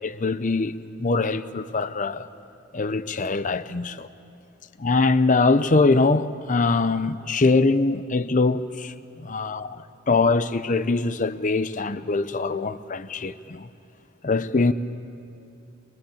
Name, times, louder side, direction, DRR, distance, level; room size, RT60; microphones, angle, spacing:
voice 1, 0.1-0.7 1.0-2.3 2.7-3.9 4.8-8.9 9.2-13.7 14.2-14.7, left 3 dB, 40° left, 0.7 m, -22 dB
23.5 x 23.0 x 8.7 m
head